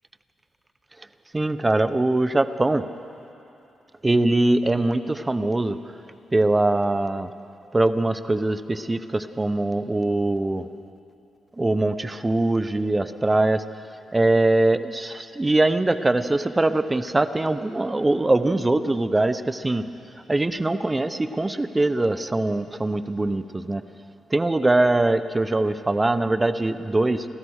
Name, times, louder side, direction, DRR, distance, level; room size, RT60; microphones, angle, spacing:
voice 1, 1.3-2.8 4.0-5.8 6.3-7.3 7.7-10.6 11.6-13.6 14.1-19.8 20.3-23.8 24.3-27.2, right 2 dB, 20° right, 11 dB, 0.8 m, -22 dB
30.0 x 13.5 x 6.5 m, 2.8 s
cardioid pair, 80°, 0 cm